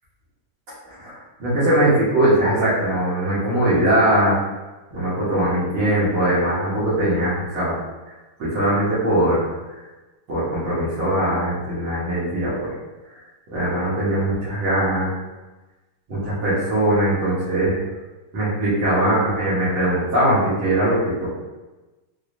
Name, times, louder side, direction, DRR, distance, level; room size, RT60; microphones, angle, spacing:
voice 1, 0.9-4.4 4.9-7.8 8.4-9.5 10.3-12.7 13.5-15.1 16.1-17.8 18.3-21.3, right 1 dB, 75° right, -10 dB, 2.0 m, -21 dB
4.8 x 2.3 x 2.5 m, 1.2 s
omnidirectional pair, 2.3 m